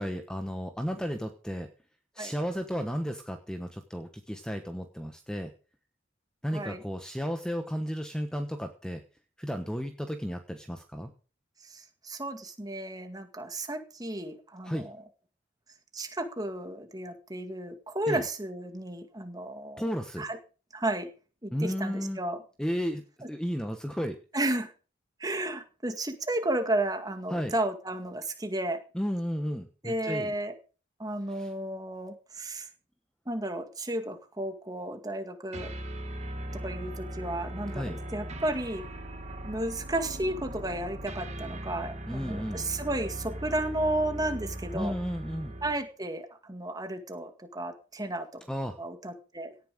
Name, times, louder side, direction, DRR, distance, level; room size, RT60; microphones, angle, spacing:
voice 1, 0.0-1.7 2.1-5.5 6.4-9.0 9.4-11.1 14.6-14.9 18.1-18.2 19.8-20.3 21.5-22.2 22.6-23.0 23.3-24.2 27.3-27.5 28.9-30.3 31.3-31.5 37.7-38.0 42.1-42.6 44.7-45.5 48.5-48.8, equal, 5° left, 6 dB, 1.1 m, -33 dB
voice 2, 6.5-6.8 11.6-15.0 15.9-19.9 20.2-20.4 20.7-21.1 21.4-22.4 23.2-23.3 24.3-24.7 25.2-28.8 29.8-30.5 31.0-32.7 33.3-35.7 36.5-38.8 39.4-44.9 45.6-48.4 48.8-49.5, right 1 dB, 20° right, 7 dB, 2.0 m, -33 dB
sound 1, 35.5-45.9, right 1 dB, 35° right, 2.4 m, -39 dB
17.5 x 9.5 x 5.1 m, 0.37 s
head